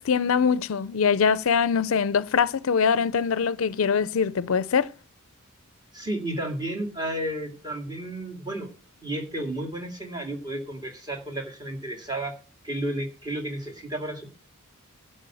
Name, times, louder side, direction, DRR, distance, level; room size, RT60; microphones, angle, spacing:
voice 1, 0.0-4.9, left 6 dB, 70° left, 0.5 m, -23 dB
voice 2, 5.9-8.7 9.0-12.4 12.6-14.3, right 1 dB, 20° right, 2.3 m, -32 dB
12.0 x 5.0 x 7.6 m
head